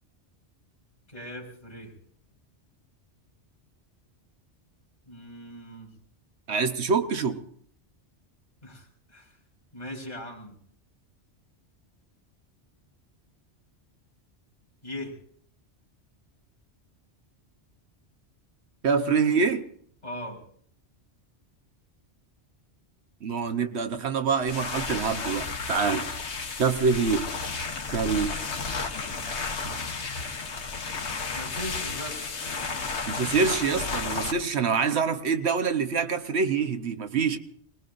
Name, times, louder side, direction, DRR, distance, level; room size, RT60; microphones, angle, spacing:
voice 1, 1.1-1.9 5.1-5.9 8.6-9.4 9.7-10.6 14.8-15.2 20.0-20.4 31.3-32.4, left 1 dB, 40° left, -2 dB, 4.2 m, -39 dB
voice 2, 6.5-7.4 18.8-19.6 23.2-26.1 26.6-27.3 27.9-28.4 29.6-29.8 33.1-37.4, right 5 dB, 75° right, 8 dB, 1.2 m, -25 dB
sound 1, 24.4-34.3, left 4 dB, 80° left, 1.6 m, -32 dB
27.0 x 20.0 x 2.6 m, 0.64 s
omnidirectional pair, 1.1 m